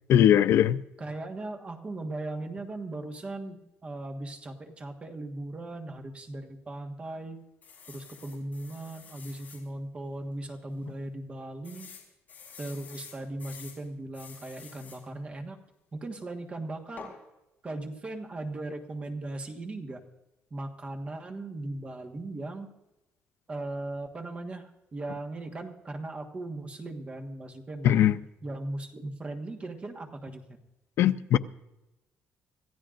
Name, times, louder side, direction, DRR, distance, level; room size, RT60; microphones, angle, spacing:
voice 1, 0.1-0.8 27.8-28.2 31.0-31.4, left 10 dB, 70° left, 0.5 m, -20 dB
voice 2, 1.0-7.4 7.9-11.9 12.6-15.6 15.9-17.1 17.6-20.0 20.5-22.7 23.5-28.2 28.4-30.6, right 2 dB, 25° right, 1.5 m, -38 dB
sound 1, 7.6-9.6 10.2-10.3 10.5-10.6 11.6-13.8 14.1-15.0 17.0-17.2, left 6 dB, 35° left, 4.0 m, -49 dB
26.5 x 14.5 x 2.5 m
cardioid pair, 150°, 5 cm